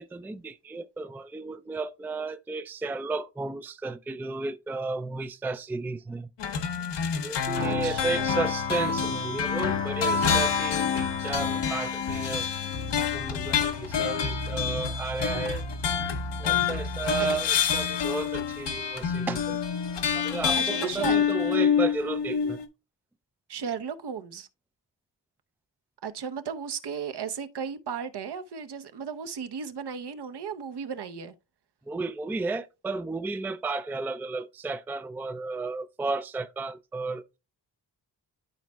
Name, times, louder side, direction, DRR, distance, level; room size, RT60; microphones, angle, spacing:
voice 1, 0.0-6.3 7.2-12.5 13.1-15.6 16.4-19.6 20.1-22.6 31.9-37.2, right 3 dB, 5° right, 0.3 m, -33 dB
sound 1, 6.4-22.7, left 6 dB, 75° left, 0.9 m, -27 dB
voice 2, 7.6-8.4 17.2-17.3 20.6-21.2 23.5-24.5 26.0-31.3, right 6 dB, 65° right, 0.8 m, -35 dB
12.5 x 4.2 x 2.2 m
cardioid pair, 70°, 43 cm